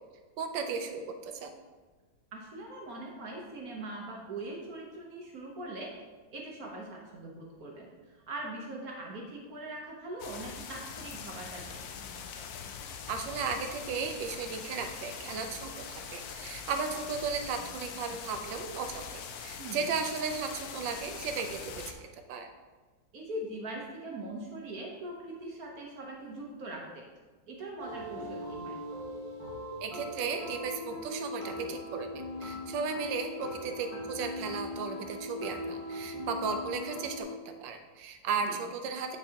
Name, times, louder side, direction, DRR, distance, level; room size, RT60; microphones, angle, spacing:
voice 1, 0.4-1.5 13.1-22.5 29.8-32.1 32.4-37.3 37.6-39.2, right 5 dB, 75° right, 6 dB, 1.3 m, -35 dB
voice 2, 2.3-5.9 6.3-11.9 19.6-19.9 23.1-27.0 27.5-28.8 38.4-38.6, right 2 dB, 55° right, -1 dB, 1.2 m, -41 dB
sound 1, 10.2-21.9, left 6 dB, 75° left, 0.9 m, -43 dB
sound 2, 27.8-37.2, left 1 dB, 25° right, 0.8 m, -40 dB
9.0 x 4.6 x 2.9 m, 1.3 s
omnidirectional pair, 2.1 m